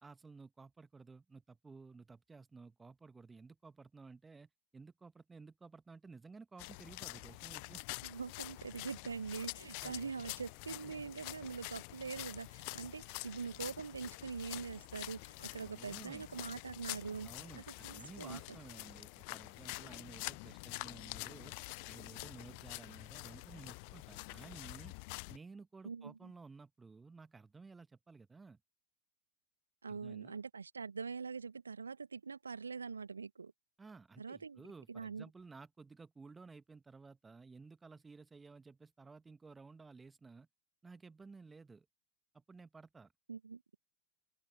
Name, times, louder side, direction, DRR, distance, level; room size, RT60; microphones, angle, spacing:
voice 1, 0.0-7.8 9.8-10.1 15.6-16.3 17.2-21.5 21.9-24.9 25.3-28.6 29.9-30.4 33.8-40.5 40.8-41.9 42.3-43.1, right 4 dB, 10° right, 1.4 m, -55 dB
sound 1, 6.6-25.4, left 35 dB, 45° left, 0.6 m, -47 dB
voice 2, 8.0-17.3 17.8-18.4 25.8-26.1 29.8-33.5 34.2-34.6 34.9-35.2 43.3-43.6, right 5 dB, 75° right, 1.6 m, -43 dB
sound 2, 12.4-18.3, right 19 dB, 40° right, 6.7 m, -74 dB
open air
figure-of-eight pair, 90°, 0 cm